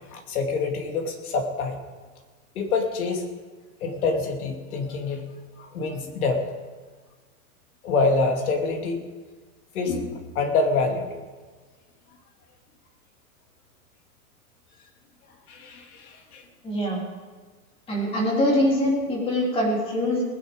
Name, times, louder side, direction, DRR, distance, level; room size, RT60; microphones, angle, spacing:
voice 1, 0.1-1.8 2.5-3.3 3.8-5.2 5.6-6.5 7.8-9.0 9.7-11.2 15.5-16.5, left 3 dB, 70° left, 3 dB, 2.7 m, -26 dB
voice 2, 16.6-17.0 17.9-20.2, equal, 15° left, -2 dB, 2.9 m, -23 dB
19.0 x 9.9 x 5.2 m, 1.4 s
supercardioid pair, 170°, 44 cm